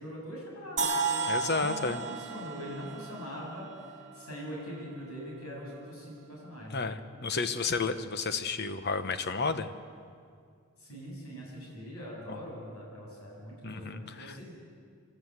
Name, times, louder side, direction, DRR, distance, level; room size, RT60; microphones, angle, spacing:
voice 1, 0.0-1.2 1.6-7.0 10.8-14.5, equal, 80° left, -3 dB, 8.0 m, -42 dB
sound 1, 0.8-4.7, right 4 dB, 35° right, 1.5 m, -33 dB
voice 2, 1.3-2.0 6.7-9.7 12.3-12.4 13.6-14.4, left 4 dB, 50° left, 10 dB, 1.0 m, -32 dB
28.0 x 12.5 x 8.1 m, 2.2 s
head